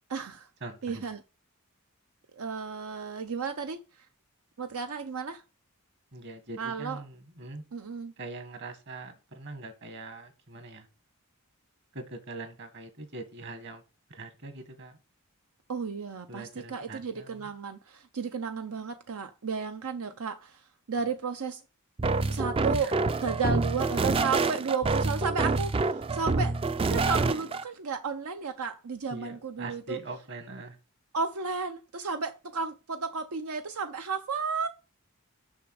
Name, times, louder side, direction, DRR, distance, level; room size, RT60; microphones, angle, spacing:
voice 1, 0.1-0.5 0.8-1.2 2.4-3.8 4.6-5.4 6.6-7.0 7.7-8.1 15.7-21.6 22.3-30.0 31.1-34.7, right 5 dB, 85° right, 0.7 m, -33 dB
voice 2, 0.6-1.0 6.1-7.6 8.2-10.9 11.9-13.8 14.1-15.0 16.3-17.5 22.7-22.9 29.1-30.8, right 2 dB, 50° right, 1.6 m, -42 dB
sound 1, 22.0-27.6, right 3 dB, 25° right, 0.3 m, -27 dB
6.7 x 6.0 x 4.8 m
head